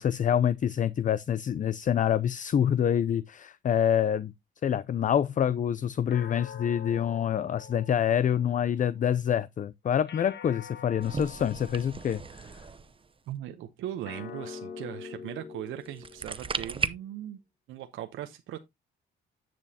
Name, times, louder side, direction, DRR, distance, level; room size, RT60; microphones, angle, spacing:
voice 1, 0.0-4.3 4.6-12.6, left 9 dB, 40° left, 0.5 m, -26 dB
sound 1, 6.1-8.7 10.1-12.6 14.0-16.7, left 7 dB, 60° left, 1.4 m, -45 dB
sound 2, 11.0-13.2 15.9-16.9, right 5 dB, 25° right, 0.8 m, -35 dB
voice 2, 13.3-17.4 17.7-18.6, right 12 dB, 85° right, 0.8 m, -39 dB
10.0 x 6.2 x 2.8 m
cardioid pair, 90°, 20 cm